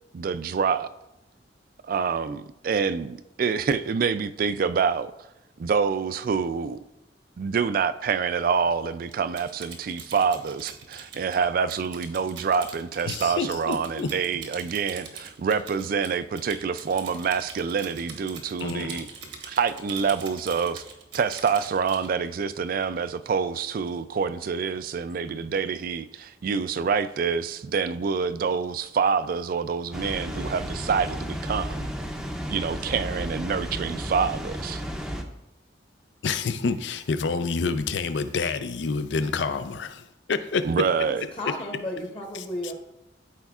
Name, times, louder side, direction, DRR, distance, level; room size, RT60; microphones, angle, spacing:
voice 1, 0.1-0.9 1.8-5.1 5.6-6.8 7.4-19.1 19.5-20.8 21.1-31.9 32.5-34.8 40.6-41.3, right 6 dB, 50° right, 0.3 m, -26 dB
Typing, 9.1-22.1, right 5 dB, 75° right, 1.1 m, -43 dB
voice 2, 13.1-14.1 18.6-19.1 36.2-40.6, left 4 dB, 75° left, 0.5 m, -28 dB
Water, 29.9-35.2, equal, 5° right, 0.6 m, -33 dB
voice 3, 40.7-42.7, left 1 dB, 30° left, 1.0 m, -34 dB
13.0 x 4.5 x 2.4 m
head